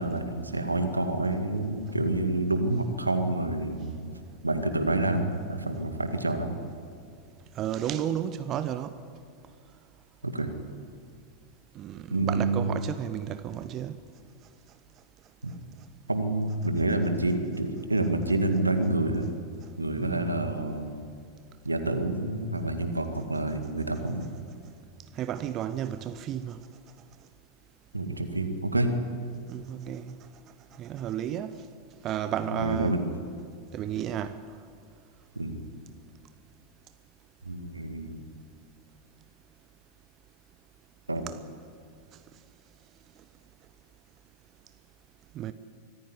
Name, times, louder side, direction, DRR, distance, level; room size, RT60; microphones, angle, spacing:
voice 1, 0.0-4.1 4.4-6.6 10.2-10.5 12.1-12.7 15.4-15.5 16.1-19.3 19.8-21.0 21.6-24.3 27.9-28.9 32.5-33.0 35.4-35.6 37.5-38.2 41.1-41.2, right 2 dB, 80° right, 2.1 m, -28 dB
voice 2, 7.6-9.0 11.7-14.0 20.0-20.5 25.2-26.6 29.5-30.2 30.8-31.6 32.0-33.0 33.7-34.4 45.3-45.5, right 10 dB, 35° right, 0.9 m, -32 dB
24.5 x 15.5 x 9.8 m
figure-of-eight pair, 90°, 0 cm